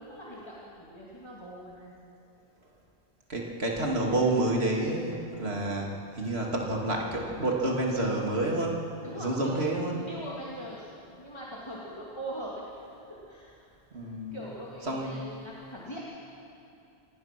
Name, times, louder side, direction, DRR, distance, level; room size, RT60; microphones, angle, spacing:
voice 1, 0.0-1.9 9.0-10.9 11.2-12.6 13.3-13.5 14.3-16.0, right 1 dB, 25° left, -6 dB, 2.5 m, -41 dB
voice 2, 3.3-8.9 9.2-10.0 13.9-14.4 14.9-15.2, right 2 dB, 85° right, -1 dB, 2.9 m, -29 dB
26.0 x 18.5 x 6.1 m, 2.6 s
omnidirectional pair, 1.0 m